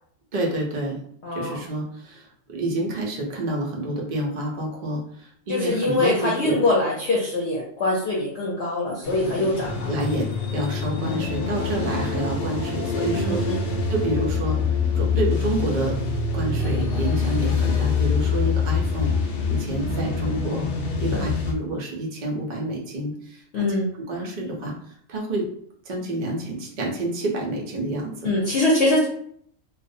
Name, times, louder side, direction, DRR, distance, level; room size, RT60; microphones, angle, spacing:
voice 1, 0.3-1.0 1.3-6.6 9.2-9.5 9.9-13.4 13.9-14.6 14.9-20.7 21.0-23.6 24.1-24.7 25.1-25.5 25.9-28.3, right 1 dB, 70° right, -1 dB, 0.4 m, -28 dB
voice 2, 1.2-1.6 5.5-9.7 13.1-13.7 21.1-21.2 23.5-23.9 28.2-29.1, left 2 dB, 60° left, -5 dB, 0.7 m, -23 dB
sound 1, 9.0-21.5, left 5 dB, 90° left, 0.5 m, -25 dB
2.4 x 2.0 x 2.6 m, 0.63 s
omnidirectional pair, 1.6 m